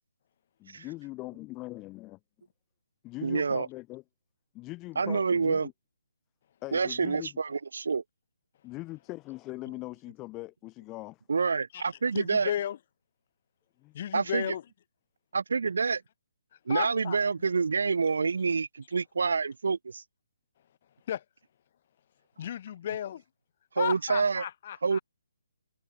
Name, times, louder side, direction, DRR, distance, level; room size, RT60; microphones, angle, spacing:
voice 1, 0.6-2.2 3.0-4.0 4.5-5.7 6.6-7.4 8.6-11.2 13.8-14.0, left 20 dB, 20° left, 2.5 m, -41 dB
voice 2, 3.2-3.7 5.0-5.7 6.7-8.0 11.3-12.5 14.1-14.5 15.3-16.0 16.7-20.0 23.8-24.4 24.8-25.0, right 5 dB, 65° right, 2.6 m, -27 dB
voice 3, 12.1-12.8 13.9-14.6 16.7-17.2 21.1-21.2 22.4-23.2 23.8-25.0, left 10 dB, 40° left, 4.8 m, -33 dB
figure-of-eight pair, 145°, 0 cm